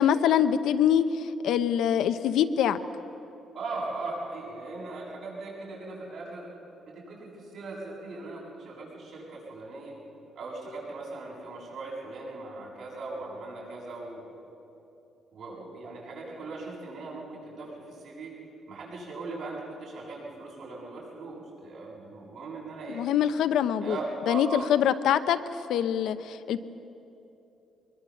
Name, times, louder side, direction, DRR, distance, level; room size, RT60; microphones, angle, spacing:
voice 1, 0.0-2.8 22.9-24.0 24.3-25.4 25.7-26.6, left 9 dB, 75° left, 10 dB, 0.8 m, -24 dB
voice 2, 3.5-6.5 6.9-9.9 10.4-14.3 15.3-18.3 18.7-23.0 23.8-24.7, right 3 dB, 60° right, -4 dB, 7.3 m, -39 dB
23.0 x 22.0 x 7.2 m, 3.0 s
cardioid pair, 175°, 0 cm